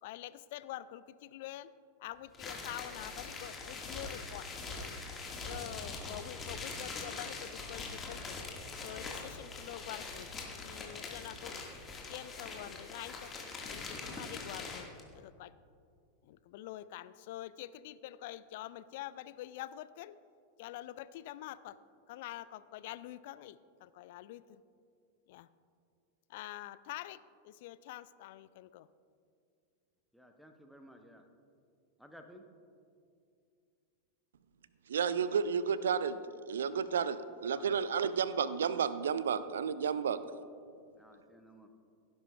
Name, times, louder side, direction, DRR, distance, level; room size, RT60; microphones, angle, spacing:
voice 1, 0.0-1.7 2.0-4.5 5.4-8.4 8.7-10.3 10.6-11.5 12.1-13.3 13.6-15.5 16.2-20.1 20.6-21.8 22.1-24.6 25.3-25.5 26.3-28.9, left 14 dB, 50° left, 16 dB, 0.3 m, -46 dB
sound 1, 2.3-15.0, left 4 dB, 20° left, 1.5 m, -43 dB
voice 2, 30.1-31.2 32.0-32.4 37.5-37.9 41.0-41.7, equal, ahead, 5 dB, 0.8 m, -56 dB
voice 3, 34.9-36.2 36.5-40.2, right 7 dB, 65° right, 14 dB, 0.4 m, -32 dB
16.5 x 10.5 x 2.2 m, 2.4 s
figure-of-eight pair, 90°, 0 cm